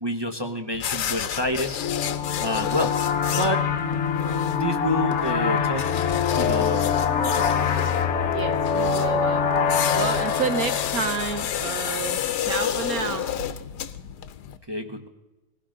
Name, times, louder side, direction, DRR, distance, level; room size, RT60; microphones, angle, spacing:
voice 1, 0.0-1.8 2.4-2.9 3.3-3.6 4.5-5.9 6.3-7.0 7.3-7.7 14.7-15.1, equal, 25° right, 3 dB, 0.5 m, -28 dB
sound 1, 0.7-14.6, left 10 dB, 80° left, 1.3 m, -31 dB
sound 2, 1.8-12.1, left 6 dB, 50° left, 1.1 m, -25 dB
voice 2, 8.3-9.5 9.9-13.3, right 6 dB, 65° right, 8 dB, 1.2 m, -30 dB
19.0 x 16.0 x 3.8 m, 1.1 s
omnidirectional pair, 1.8 m